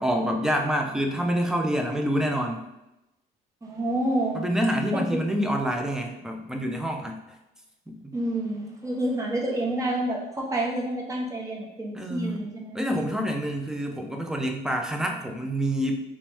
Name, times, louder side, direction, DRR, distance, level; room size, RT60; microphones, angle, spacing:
voice 1, 0.0-2.6 4.3-7.4 7.9-8.2 11.9-12.5 12.7-16.0, equal, 5° right, 3 dB, 0.5 m, -27 dB
voice 2, 3.6-4.4 4.9-5.2 8.1-12.8, right 1 dB, 20° right, -2 dB, 0.9 m, -28 dB
3.0 x 3.0 x 3.5 m, 0.91 s
cardioid pair, 110°, 17 cm